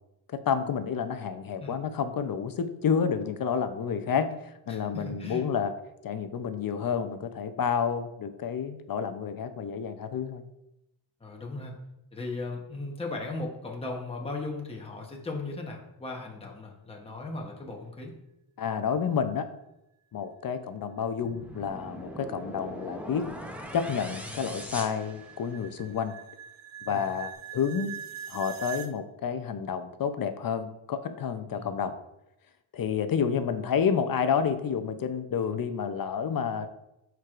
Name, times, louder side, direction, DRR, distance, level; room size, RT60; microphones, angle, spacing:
voice 1, 0.3-5.7 6.0-10.5 18.6-19.5 20.1-23.3 23.7-26.1 26.9-27.9 28.3-31.9 32.7-36.7, left 7 dB, 45° left, 9 dB, 0.6 m, -29 dB
voice 2, 4.7-5.4 11.2-11.8 12.1-18.1 26.9-27.0 31.5-31.7, left 2 dB, 10° left, -1 dB, 0.9 m, -37 dB
sound 1, 21.2-25.8, equal, 5° right, 0.6 m, -41 dB
sound 2, 21.8-28.9, right 9 dB, 65° right, 0.8 m, -44 dB
11.5 x 4.6 x 2.5 m, 0.88 s
wide cardioid pair, 160°, 49 cm